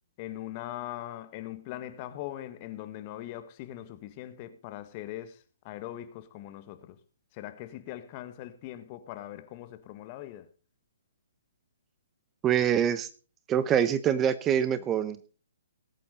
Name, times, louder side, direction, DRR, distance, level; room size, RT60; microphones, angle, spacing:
voice 1, 0.2-5.4 5.6-7.0 7.4-10.5, left 13 dB, 35° left, 1.6 m, -41 dB
voice 2, 12.4-13.1 13.5-15.2, right 9 dB, 20° right, 0.8 m, -25 dB
19.5 x 8.4 x 4.1 m
figure-of-eight pair, 130°, 0 cm